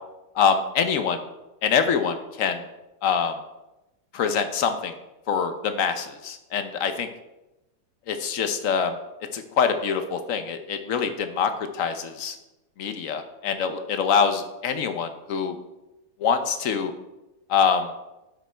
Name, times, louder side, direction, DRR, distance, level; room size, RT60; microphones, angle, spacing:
voice 1, 0.3-1.2 1.6-2.6 3.0-3.4 4.1-4.9 5.3-7.1 8.1-9.0 9.3-12.4 12.8-15.6 16.2-16.9 17.5-17.9, left 6 dB, 60° left, 8 dB, 1.0 m, -24 dB
9.0 x 5.2 x 4.4 m, 0.97 s
omnidirectional pair, 1.8 m